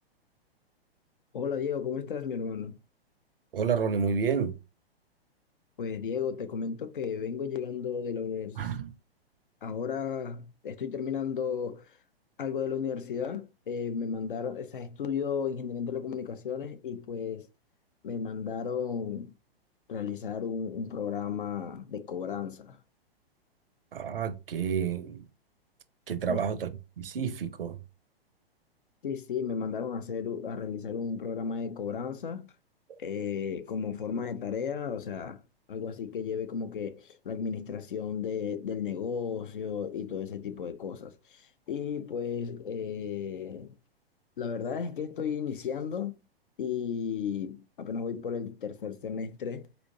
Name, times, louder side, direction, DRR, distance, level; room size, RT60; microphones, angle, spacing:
voice 1, 1.3-2.8 5.8-8.7 9.6-12.0 12.4-17.5 18.0-19.3 19.9-22.8 26.3-26.4 29.0-32.5 33.0-35.4 35.7-43.7 44.4-46.2 46.6-49.7, left 7 dB, 55° left, 0.6 m, -34 dB
voice 2, 3.5-4.6 8.6-8.9 23.9-25.2 26.1-26.7 27.0-27.8, right 6 dB, 65° right, 0.6 m, -30 dB
4.2 x 2.7 x 2.7 m
figure-of-eight pair, 110°, 31 cm